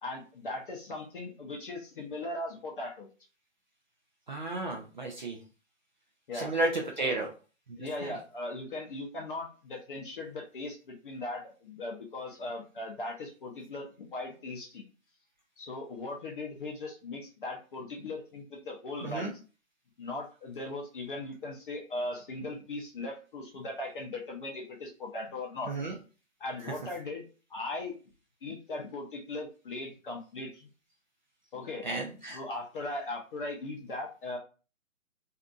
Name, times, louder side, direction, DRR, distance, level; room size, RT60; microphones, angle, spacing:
voice 1, 0.0-3.1 6.3-6.5 7.0-7.1 7.7-14.9 15.6-19.4 20.0-25.7 26.4-28.0 28.4-30.7 31.5-31.9 32.3-34.4, left 2 dB, 40° left, -1 dB, 0.6 m, -38 dB
voice 2, 4.3-5.4 6.3-7.3 7.7-8.2 19.0-19.3 25.7-25.9 31.8-32.4, right 2 dB, 40° right, 0 dB, 0.4 m, -33 dB
2.6 x 2.4 x 2.3 m, 0.36 s
figure-of-eight pair, 135°, 40 cm